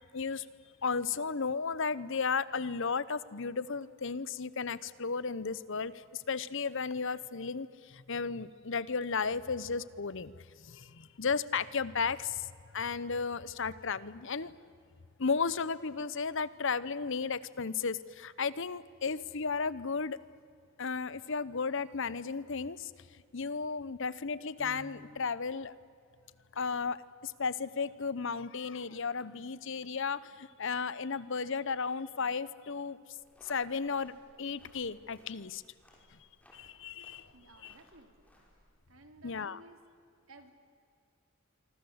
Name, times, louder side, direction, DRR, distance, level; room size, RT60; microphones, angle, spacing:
voice 1, 0.1-0.5 0.8-14.5 15.2-20.2 20.8-25.7 26.5-33.0 33.4-34.1 34.4-35.6 36.5-37.3 37.6-37.7 39.2-39.6, left 5 dB, 65° left, 17 dB, 0.9 m, -34 dB
Piano, 24.6-25.6, right 1 dB, 35° right, 4.6 m, -52 dB
sound 1, 33.2-38.7, left 1 dB, 5° left, 5.6 m, -63 dB
voice 2, 37.3-38.3 38.9-39.8 40.3-40.5, right 2 dB, 80° right, 6 dB, 3.0 m, -56 dB
26.5 x 25.0 x 8.1 m, 2.4 s
head